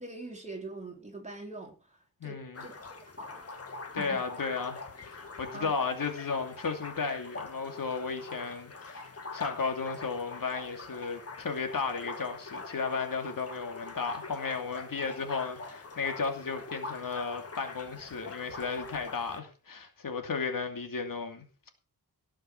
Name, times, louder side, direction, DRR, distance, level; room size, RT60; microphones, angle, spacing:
voice 1, 0.0-3.5 3.9-4.2 5.5-5.7, right 2 dB, 20° right, 3.9 m, -44 dB
voice 2, 2.2-2.6 3.9-21.7, left 4 dB, 60° left, 2.7 m, -34 dB
sound 1, 2.5-19.4, left 3 dB, 40° left, 1.9 m, -44 dB
18.5 x 6.5 x 5.9 m
wide cardioid pair, 170°, 37 cm